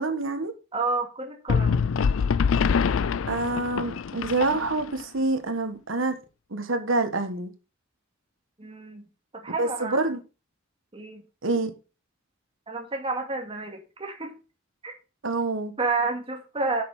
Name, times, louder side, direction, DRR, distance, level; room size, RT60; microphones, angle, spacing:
voice 1, 0.0-0.5 3.3-6.2 6.5-7.5 9.6-10.2 11.4-11.7 15.2-15.7, right 2 dB, 70° right, 1.5 m, -26 dB
voice 2, 0.7-1.9 8.6-10.1 10.9-11.2 12.7-14.3 14.8-14.9 15.8-16.8, right 3 dB, 30° right, 2.3 m, -30 dB
sound 1, 1.5-5.0, left 6 dB, 75° left, 0.4 m, -24 dB
8.2 x 6.5 x 5.5 m
head